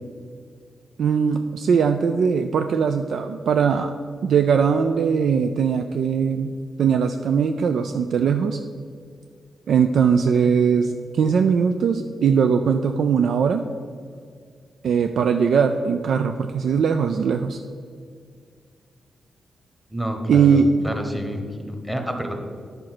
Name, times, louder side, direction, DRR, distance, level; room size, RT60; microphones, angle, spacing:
voice 1, 1.0-3.9 4.2-8.6 9.7-13.7 14.8-17.6 20.3-20.7, right 6 dB, 70° right, 7 dB, 0.4 m, -20 dB
voice 2, 19.9-22.3, equal, 5° right, 4 dB, 1.1 m, -29 dB
9.8 x 5.2 x 6.0 m, 2.1 s
wide cardioid pair, 125°, 0 cm